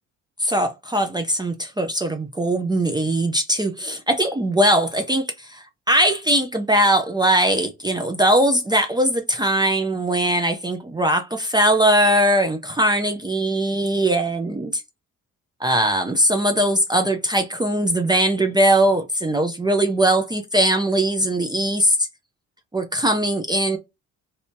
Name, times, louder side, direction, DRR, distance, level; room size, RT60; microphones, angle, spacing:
voice 1, 0.4-14.8 15.6-22.0 22.7-23.8, right 1 dB, 15° right, 0.6 m, -20 dB
3.3 x 2.8 x 2.7 m
cardioid pair, 90°, 30 cm